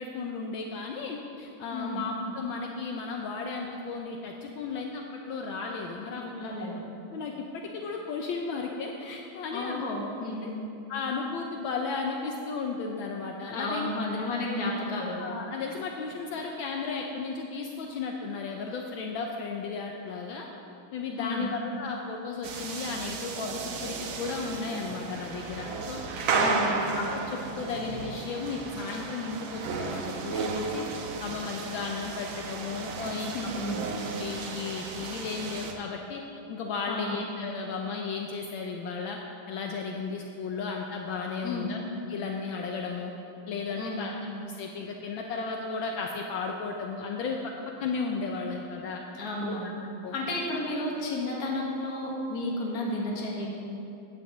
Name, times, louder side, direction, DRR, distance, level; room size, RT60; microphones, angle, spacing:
voice 1, 0.0-6.2 7.1-9.9 10.4-10.5 10.9-13.9 15.2-20.5 20.9-26.6 26.9-30.9 31.2-33.3 34.2-36.2 36.5-39.2 39.5-41.8 42.1-43.1 43.5-44.1 44.5-47.4 47.8-49.0 49.4-49.5 50.0-50.1, left 4 dB, 75° left, 1 dB, 1.4 m, -34 dB
voice 2, 1.7-2.0 6.2-6.8 9.5-10.6 13.5-15.2 21.2-21.5 26.4-26.8 33.0-33.9 36.9-37.2 41.4-41.7 43.8-44.1 49.1-49.7 50.1-53.5, left 2 dB, 50° left, -4 dB, 1.9 m, -32 dB
sound 1, 22.4-35.7, right 4 dB, 75° right, 1.6 m, -33 dB
15.0 x 9.3 x 3.1 m, 2.8 s
omnidirectional pair, 2.3 m